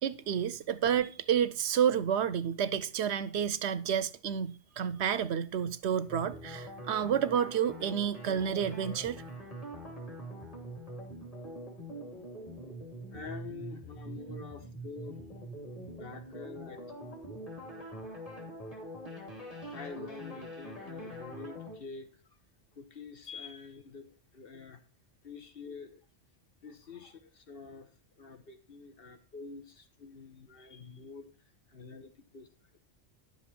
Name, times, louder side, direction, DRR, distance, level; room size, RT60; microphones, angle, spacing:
voice 1, 0.0-9.2, right 8 dB, 75° right, 0.9 m, -30 dB
sound 1, 6.1-21.8, right 1 dB, 30° left, 2.8 m, -44 dB
voice 2, 13.1-15.3 15.8-17.2 19.7-22.1 22.8-24.8 25.2-26.0 26.6-27.9 28.2-31.3 31.7-32.5, left 4 dB, 55° left, 1.4 m, -46 dB
11.0 x 7.3 x 4.3 m
omnidirectional pair, 1.2 m